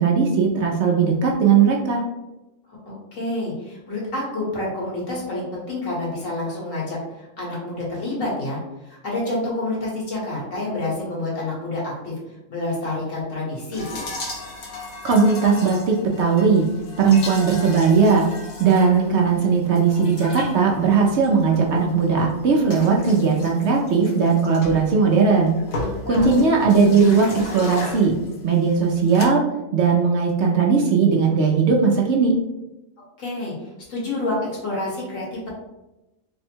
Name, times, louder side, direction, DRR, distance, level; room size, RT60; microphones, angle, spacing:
voice 1, 0.0-2.0 15.0-16.7 17.0-18.3 18.6-25.6 26.1-28.1 28.4-29.4 29.7-32.3, right 5 dB, 65° right, -1 dB, 0.8 m, -18 dB
voice 2, 2.8-12.1 12.5-13.8 25.8-26.4 33.2-33.5 33.9-35.5, left 2 dB, 70° left, -5 dB, 1.7 m, -28 dB
sound 1, 13.7-29.3, left 2 dB, 85° left, 1.2 m, -36 dB
3.5 x 2.1 x 4.3 m, 0.97 s
omnidirectional pair, 1.4 m